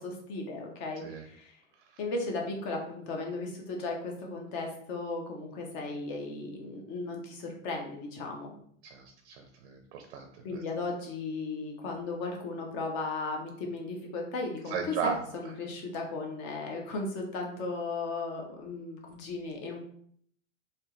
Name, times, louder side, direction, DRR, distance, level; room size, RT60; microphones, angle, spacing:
voice 1, 0.0-1.6 2.0-8.5 10.4-19.8, left 3 dB, 30° left, 1 dB, 0.7 m, -36 dB
voice 2, 8.8-10.6 14.7-15.2, right 7 dB, 50° right, 5 dB, 0.6 m, -36 dB
3.4 x 2.9 x 3.1 m, 0.63 s
supercardioid pair, 160°, 39 cm